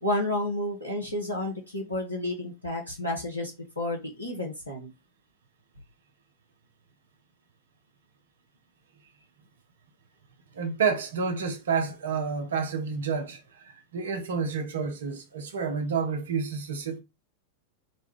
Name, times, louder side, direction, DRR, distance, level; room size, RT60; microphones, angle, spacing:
voice 1, 0.0-4.9, left 1 dB, 85° left, 0.9 m, -31 dB
voice 2, 10.5-17.0, right 5 dB, 65° right, 0.7 m, -29 dB
4.0 x 2.2 x 3.2 m
figure-of-eight pair, 90°, 0 cm